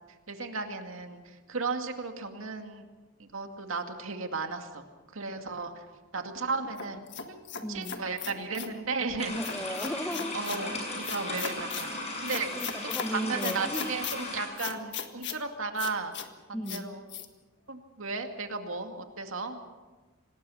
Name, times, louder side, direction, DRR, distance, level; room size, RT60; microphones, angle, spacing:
voice 1, 0.3-2.8 3.2-4.8 5.1-5.8 6.1-7.4 7.7-9.3 10.3-12.5 13.1-16.1 16.5-17.0 17.7-19.6, right 4 dB, 75° right, 5 dB, 2.3 m, -35 dB
sound 1, 6.8-8.7 9.4-10.6 11.0-11.9 12.3-13.1 13.4-14.2 14.6-15.4 15.8-16.3 16.7-16.8 17.1-17.3, left 8 dB, 55° left, 1.7 m, -37 dB
voice 2, 7.6-8.0 9.3-11.0 12.5-13.9 16.5-17.0, equal, 5° left, 9 dB, 0.9 m, -36 dB
sound 2, 9.2-14.5, left 2 dB, 30° left, 7.1 m, -37 dB
26.5 x 19.5 x 5.8 m, 1.2 s
head